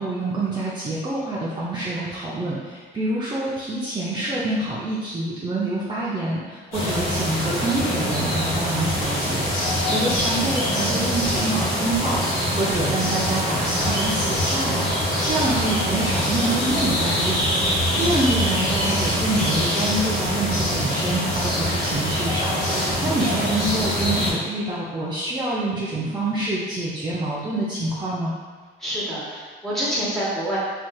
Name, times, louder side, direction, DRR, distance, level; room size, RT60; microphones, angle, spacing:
voice 1, 0.0-28.4, right 2 dB, 20° right, -7 dB, 0.5 m, -26 dB
sound 1, 6.7-24.3, equal, 90° left, 1.5 m, -24 dB
voice 2, 23.0-23.4 28.8-30.6, equal, ahead, -9 dB, 1.3 m, -28 dB
3.3 x 3.0 x 2.3 m, 1.5 s
cardioid pair, 90°, 20 cm